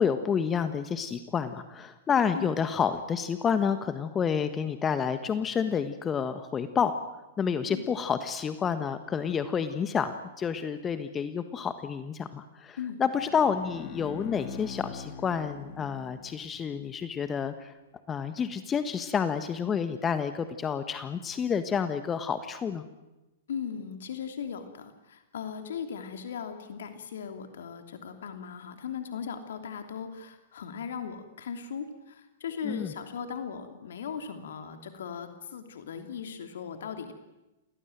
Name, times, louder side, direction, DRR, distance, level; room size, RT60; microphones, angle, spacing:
voice 1, 0.0-6.9 7.4-17.7 18.1-22.8 32.6-32.9, left 7 dB, 20° left, 10 dB, 1.5 m, -29 dB
Bowed string instrument, 13.2-16.7, left 6 dB, 40° left, 2.7 m, -43 dB
voice 2, 23.5-37.1, left 7 dB, 65° left, 7 dB, 2.9 m, -38 dB
28.0 x 19.5 x 9.2 m, 1.0 s
figure-of-eight pair, 105°, 0 cm